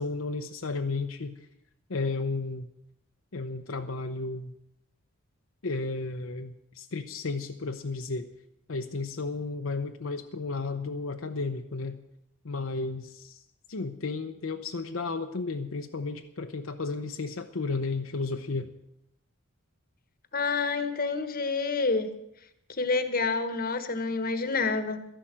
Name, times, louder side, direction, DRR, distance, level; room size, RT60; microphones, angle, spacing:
voice 1, 0.0-1.4 1.9-2.7 3.3-4.5 5.6-8.3 8.7-12.0 12.4-13.4 13.7-18.7, left 3 dB, 70° left, 5 dB, 0.8 m, -33 dB
voice 2, 20.3-22.1 22.8-25.1, left 4 dB, 45° left, 10 dB, 1.2 m, -28 dB
13.0 x 11.0 x 7.4 m, 0.80 s
head